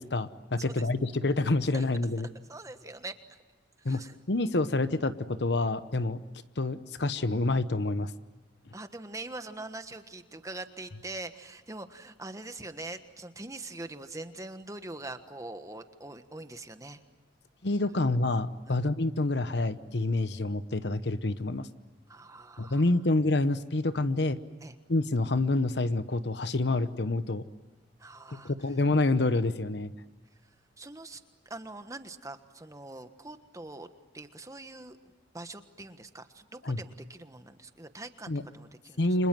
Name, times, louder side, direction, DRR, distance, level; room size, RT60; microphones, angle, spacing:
voice 1, 0.0-2.3 3.8-4.0 4.3-6.2 6.6-8.1 17.6-21.7 22.6-24.4 24.9-27.4 28.3-29.9 36.6-36.8 38.3-38.4 39.0-39.3, left 2 dB, 65° left, 13 dB, 1.0 m, -27 dB
voice 2, 2.5-3.2 3.9-4.2 8.7-17.0 18.7-18.8 22.1-22.8 24.6-24.7 28.0-28.5 30.8-33.9 34.1-39.0, right 2 dB, 20° right, 9 dB, 1.4 m, -43 dB
30.0 x 26.0 x 7.6 m, 1.2 s
head